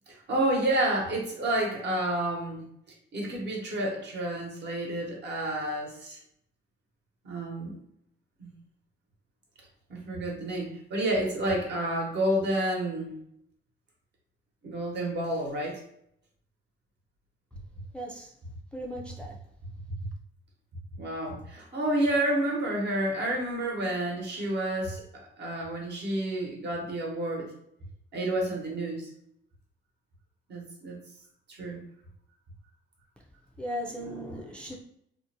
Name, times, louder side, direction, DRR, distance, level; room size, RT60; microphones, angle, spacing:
voice 1, 0.1-2.6 3.1-6.2 7.2-7.8 8.4-8.5 9.9-13.1 14.6-15.8 20.0-20.1 21.0-25.0 25.4-27.5 28.1-29.1 30.5-31.0 31.5-31.8, right 1 dB, 60° right, -1 dB, 1.0 m, -30 dB
voice 2, 17.9-18.3 18.7-19.4 33.6-34.8, equal, 5° left, -2 dB, 0.4 m, -37 dB
2.6 x 2.1 x 2.7 m, 0.72 s
cardioid pair, 90°, 20 cm